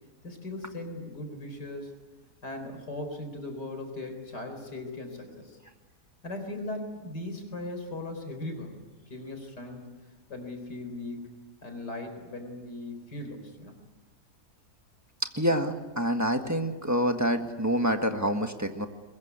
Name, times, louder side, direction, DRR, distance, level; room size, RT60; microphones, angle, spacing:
voice 1, 0.2-1.9 2.4-5.6 6.2-8.7 9.1-9.9 10.3-11.3 11.6-13.8, left 2 dB, 85° left, 6 dB, 4.9 m, -38 dB
voice 2, 15.2-18.9, equal, 10° right, 5 dB, 1.5 m, -27 dB
22.5 x 21.5 x 9.6 m, 1.2 s
omnidirectional pair, 1.7 m